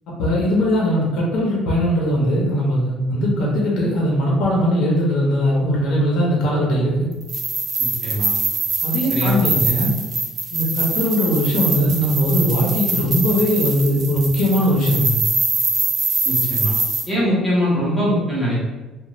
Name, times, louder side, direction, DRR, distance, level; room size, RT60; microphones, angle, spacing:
voice 1, 0.2-7.1 8.8-9.9 10.5-15.1, equal, 60° left, -4 dB, 0.8 m, -19 dB
sound 1, 7.2-17.0, right 3 dB, 30° right, 0.5 m, -23 dB
voice 2, 7.8-8.3 9.1-9.7 16.2-16.7 17.1-18.6, equal, 10° left, -8 dB, 1.1 m, -22 dB
2.5 x 2.4 x 3.1 m, 1.2 s
cardioid pair, 150°, 0 cm